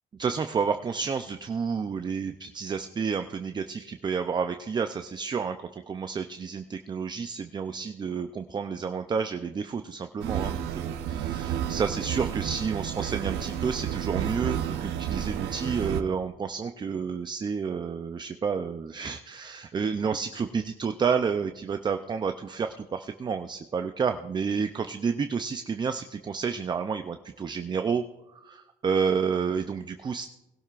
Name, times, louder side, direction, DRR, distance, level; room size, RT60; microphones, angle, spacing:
voice 1, 0.2-28.0 28.4-30.3, right 6 dB, 25° right, 8 dB, 0.5 m, -30 dB
sound 1, 10.2-16.0, right 10 dB, 80° right, 0.8 m, -31 dB
21.0 x 12.0 x 2.5 m, 0.95 s
cardioid pair, 110°, 17 cm